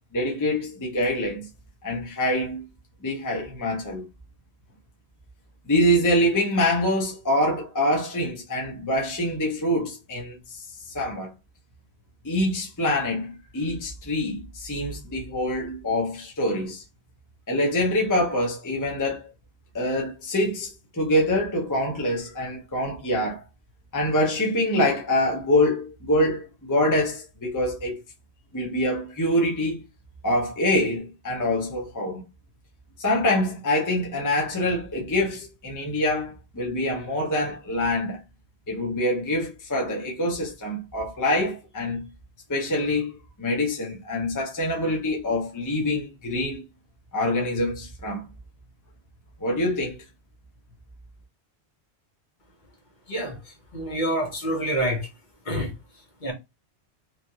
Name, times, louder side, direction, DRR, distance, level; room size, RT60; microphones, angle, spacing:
voice 1, 0.1-1.5 1.8-2.7 3.0-4.1 5.7-10.6 10.9-11.3 12.2-16.8 17.5-19.2 19.7-23.4 23.9-28.0 28.5-29.8 30.2-32.2 33.0-38.2 38.7-42.1 42.5-46.6 47.1-48.3 49.4-50.0, left 1 dB, 20° left, 0.7 m, -25 dB
voice 2, 53.7-55.1 55.5-55.7 56.2-56.3, right 1 dB, 45° left, 1.1 m, -27 dB
3.1 x 2.4 x 2.7 m
omnidirectional pair, 1.1 m